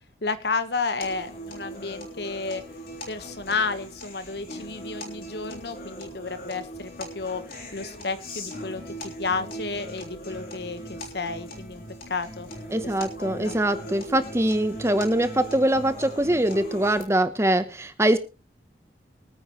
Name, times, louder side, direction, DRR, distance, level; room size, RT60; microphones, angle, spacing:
voice 1, 0.2-2.6 3.1-7.4 7.7-11.8 12.1-12.5 12.8-13.5, left 4 dB, 75° left, 11 dB, 1.3 m, -32 dB
sound 1, 1.0-17.0, equal, 55° left, 3.4 m, -39 dB
voice 2, 12.7-18.2, right 1 dB, 15° right, 11 dB, 0.9 m, -23 dB
23.5 x 9.3 x 3.1 m, 0.30 s
head